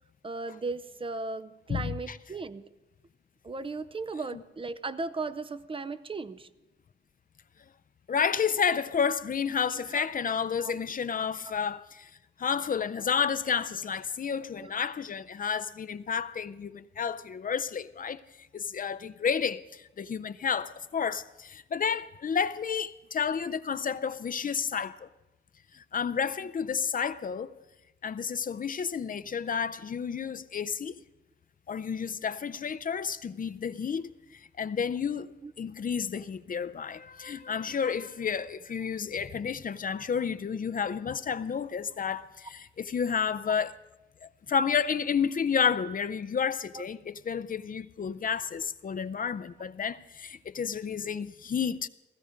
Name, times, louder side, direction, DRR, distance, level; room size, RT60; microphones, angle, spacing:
voice 1, 0.2-2.6 3.4-6.5 9.7-10.1 10.6-10.7 11.4-11.5 14.6-14.7 35.4-35.5 46.7-46.8, right 3 dB, 25° right, 0.5 m, -37 dB
voice 2, 1.7-2.2 4.3-4.4 8.1-12.1 12.4-18.2 18.5-25.1 25.7-27.5 28.0-31.0 31.7-43.8 44.2-51.9, left 6 dB, 45° left, 0.5 m, -31 dB
16.0 x 15.0 x 5.1 m
wide cardioid pair, 175°, 21 cm